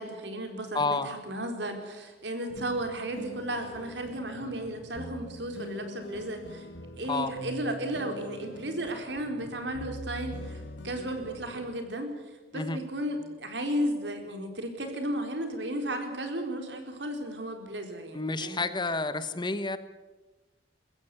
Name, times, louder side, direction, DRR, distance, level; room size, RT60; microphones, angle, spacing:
voice 1, 0.0-6.7 7.0-12.2 12.5-18.6, right 1 dB, 75° right, 5 dB, 4.2 m, -34 dB
voice 2, 0.7-1.1 7.1-7.3 12.5-12.8 18.1-19.8, left 3 dB, 25° left, 12 dB, 1.2 m, -30 dB
sound 1, 2.5-12.0, left 1 dB, 85° left, 2.0 m, -44 dB
22.0 x 16.0 x 9.5 m, 1.2 s
head